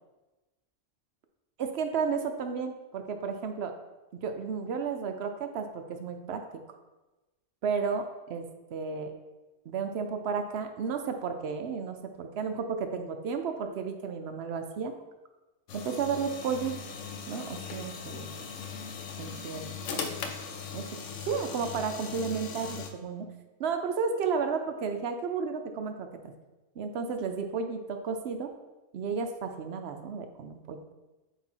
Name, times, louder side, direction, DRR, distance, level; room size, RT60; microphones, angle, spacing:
voice 1, 1.6-3.7 4.1-6.4 7.6-8.5 8.7-9.1 9.7-14.9 15.7-16.8 17.3-18.3 19.2-20.2 20.7-23.3 23.6-26.1 26.8-28.5 28.9-30.9, right 5 dB, 65° right, 6 dB, 0.8 m, -33 dB
sound 1, 15.7-22.9, left 6 dB, 80° left, 1.0 m, -39 dB
8.0 x 2.7 x 4.4 m, 1.1 s
omnidirectional pair, 1.3 m